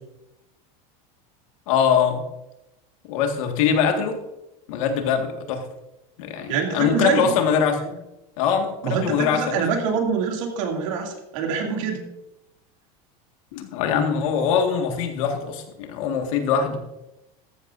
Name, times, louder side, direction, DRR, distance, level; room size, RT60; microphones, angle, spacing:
voice 1, 1.7-2.2 3.0-4.2 4.7-5.7 6.2-7.8 8.4-9.6 13.5-16.8, left 7 dB, 70° left, 4 dB, 1.9 m, -22 dB
voice 2, 6.5-7.4 7.8-7.9 8.8-12.1, right 6 dB, 65° right, 1 dB, 2.7 m, -25 dB
14.0 x 11.5 x 2.7 m, 0.93 s
supercardioid pair, 170°, 18 cm